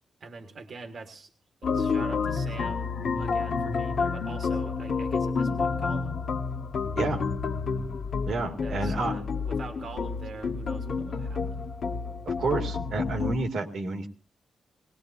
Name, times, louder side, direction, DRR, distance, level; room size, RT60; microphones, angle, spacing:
voice 1, 0.2-1.3 1.6-6.2 8.6-11.7, right 3 dB, 55° right, 6 dB, 1.5 m, -43 dB
sound 1, 1.6-13.4, left 5 dB, 60° left, 1.3 m, -29 dB
voice 2, 8.2-9.1 12.3-14.1, right 3 dB, 75° right, 4 dB, 2.1 m, -30 dB
21.0 x 18.5 x 2.7 m, 0.34 s
wide cardioid pair, 130°, 0 cm